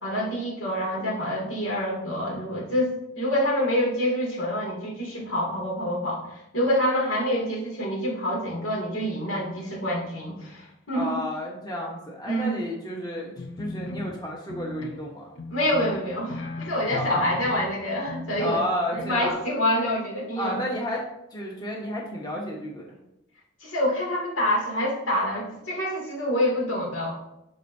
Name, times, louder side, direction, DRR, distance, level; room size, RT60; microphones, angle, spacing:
voice 1, 0.0-11.2 12.3-12.6 15.5-18.6 18.9-20.6 23.6-27.1, equal, 85° left, -3 dB, 2.7 m, -27 dB
voice 2, 10.9-13.3 13.6-15.3 16.9-17.3 18.4-19.5 20.4-22.9, equal, 20° left, -2 dB, 1.2 m, -31 dB
sound 1, 13.4-15.1 15.4-17.8 18.1-18.7 18.9-19.3, left 2 dB, 70° left, 0.6 m, -37 dB
12.5 x 5.3 x 2.8 m, 0.88 s
head